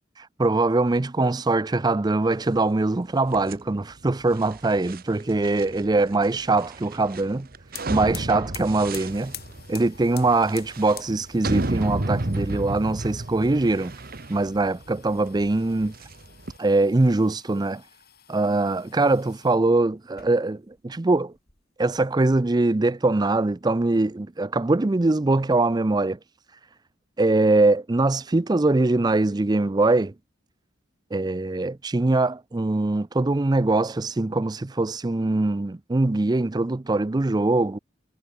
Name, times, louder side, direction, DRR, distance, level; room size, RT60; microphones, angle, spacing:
voice 1, 0.4-7.5 7.9-9.3 9.7-13.9 14.3-15.9 16.6-17.8 18.3-21.3 21.8-26.2 27.2-30.1 31.1-37.8, right 2 dB, 20° right, 0.5 m, -22 dB
sound 1, 3.3-16.6, right 2 dB, 50° right, 1.3 m, -33 dB
sound 2, 7.3-7.4 7.6-19.6 20.0-20.8 21.1-22.1, left 12 dB, 55° left, 7.6 m, -47 dB
head